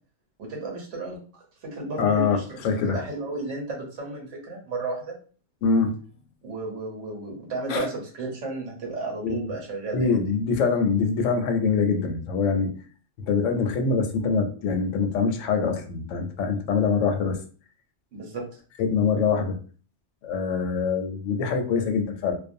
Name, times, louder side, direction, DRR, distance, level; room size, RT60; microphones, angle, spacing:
voice 1, 0.4-2.6 2.9-5.2 6.4-10.1 18.1-18.4, right 2 dB, 90° right, 0 dB, 1.2 m, -33 dB
voice 2, 2.0-3.0 5.6-5.9 7.7-7.9 9.2-9.4 9.9-12.7 13.2-17.4 18.8-19.6 20.2-22.4, left 5 dB, 90° left, 5 dB, 0.9 m, -24 dB
2.4 x 2.2 x 2.5 m, 0.40 s
omnidirectional pair, 1.2 m